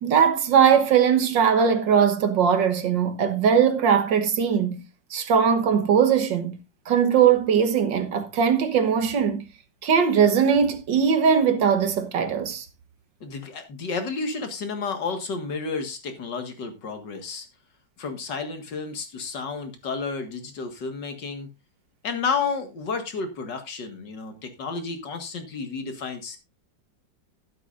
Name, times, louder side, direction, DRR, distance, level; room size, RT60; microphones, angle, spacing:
voice 1, 0.0-4.8 5.1-6.6 6.9-9.4 9.8-12.7, right 7 dB, 75° right, 1.9 m, -20 dB
voice 2, 13.2-17.5 18.0-21.5 22.0-26.4, left 4 dB, 70° left, 2.4 m, -31 dB
12.0 x 12.0 x 2.6 m
omnidirectional pair, 2.0 m